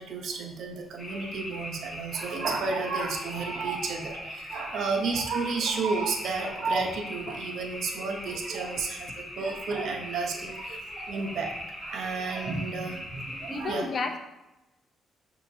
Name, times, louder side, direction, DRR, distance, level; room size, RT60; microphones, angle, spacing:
voice 1, 0.0-13.9, right 4 dB, 70° right, 2 dB, 0.7 m, -32 dB
sound 1, 1.0-13.6, left 1 dB, 20° left, 1.0 m, -40 dB
voice 2, 4.5-5.1 13.5-14.2, left 4 dB, 50° left, 6 dB, 0.5 m, -33 dB
6.3 x 2.8 x 2.6 m, 0.97 s
cardioid pair, 90°, 0 cm